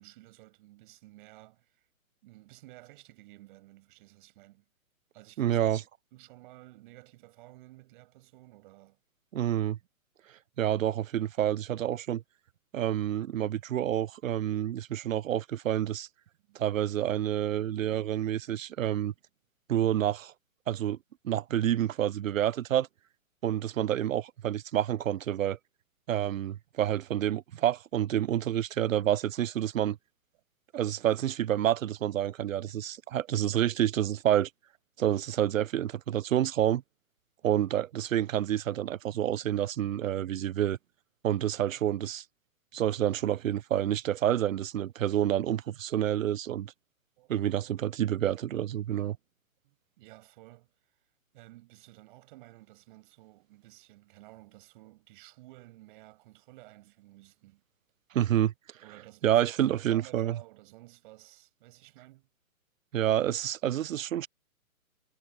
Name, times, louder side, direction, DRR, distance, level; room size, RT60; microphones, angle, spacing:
voice 1, 0.0-1.9 2.2-4.7 5.1-5.7 6.1-9.0 16.4-16.6 47.2-47.5 49.6-51.0 51.3-57.6 58.8-59.4 59.9-62.3, right 19 dB, 35° right, 7.1 m, -54 dB
voice 2, 5.4-5.8 9.3-9.8 10.6-12.2 12.7-16.1 16.5-19.1 19.7-20.3 20.7-21.0 21.2-22.9 23.4-25.6 26.1-30.0 30.7-34.5 35.0-36.8 37.4-40.8 41.2-42.2 42.7-46.7 47.3-49.2 58.1-58.5 59.2-60.4 62.9-64.3, right 11 dB, 70° right, 0.7 m, -28 dB
hypercardioid pair, 145°, 42 cm